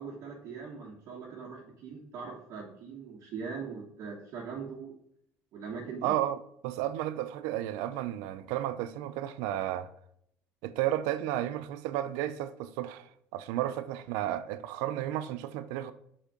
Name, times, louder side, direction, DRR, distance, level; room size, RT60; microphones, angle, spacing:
voice 1, 0.0-4.9 5.5-6.1, right 5 dB, 65° right, 1.4 m, -41 dB
voice 2, 6.0-6.4 6.6-9.9 10.6-15.9, right 13 dB, 85° right, 0.5 m, -33 dB
5.3 x 4.2 x 5.0 m
supercardioid pair, 100°, 6 cm